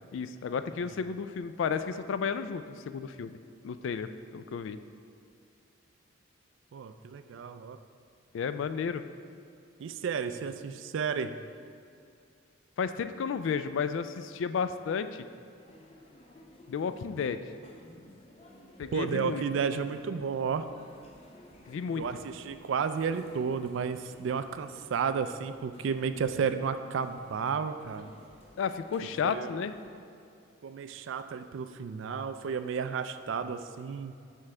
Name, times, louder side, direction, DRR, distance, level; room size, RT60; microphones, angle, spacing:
voice 1, 0.1-3.4 3.6-4.8 8.3-9.0 12.8-15.3 16.7-17.5 18.8-19.4 21.7-22.1 28.6-29.7, left 6 dB, 75° left, 11 dB, 0.3 m, -32 dB
voice 2, 6.7-7.8 9.8-11.3 18.9-20.7 21.9-28.1 29.2-29.5 30.6-34.2, right 6 dB, 70° right, 10 dB, 0.3 m, -32 dB
sound 1, 15.6-29.9, left 1 dB, 30° left, 0.6 m, -55 dB
7.5 x 5.9 x 3.3 m, 2.5 s
head